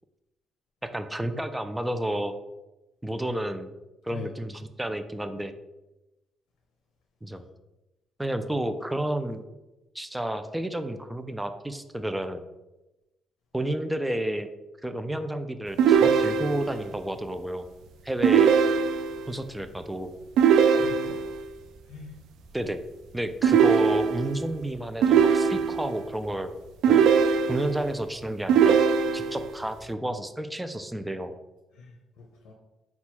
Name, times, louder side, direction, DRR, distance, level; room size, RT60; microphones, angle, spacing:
voice 1, 0.8-2.3 3.0-3.7 4.0-5.5 7.2-7.4 8.2-9.4 9.9-12.4 13.5-14.5 14.8-17.7 18.0-18.5 19.3-20.1 22.5-22.8 23.1-26.5 26.9-27.1 27.5-28.8 29.1-31.3, right 1 dB, 10° right, 9 dB, 0.4 m, -31 dB
sound 1, 15.8-16.8 18.2-19.3 20.4-21.4 23.4-24.4 25.0-26.0 26.8-27.9 28.5-29.5, right 7 dB, 85° right, 0.3 m, -21 dB
voice 2, 20.5-21.2 21.9-22.2 29.4-29.5 31.7-32.5, left 6 dB, 90° left, 0 dB, 0.6 m, -44 dB
4.3 x 2.3 x 4.2 m, 1.0 s
cardioid pair, 90°, 0 cm